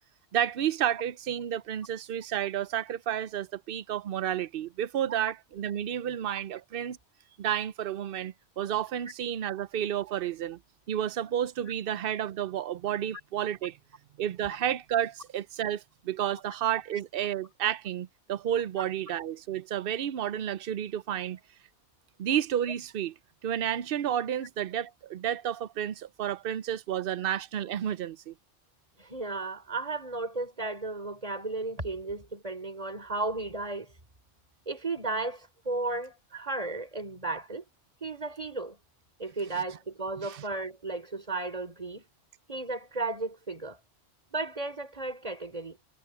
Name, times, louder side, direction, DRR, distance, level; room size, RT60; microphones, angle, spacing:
voice 1, 0.3-7.0 7.4-10.6 10.9-13.8 14.2-21.4 22.2-23.1 23.4-28.3 39.6-39.7 40.2-40.4, right 10 dB, 60° right, 0.7 m, -31 dB
voice 2, 29.0-33.9 34.7-37.6 38.0-38.8 39.2-42.0 42.5-43.8 44.3-45.8, right 3 dB, 30° right, 4.2 m, -34 dB
omnidirectional pair, 1.2 m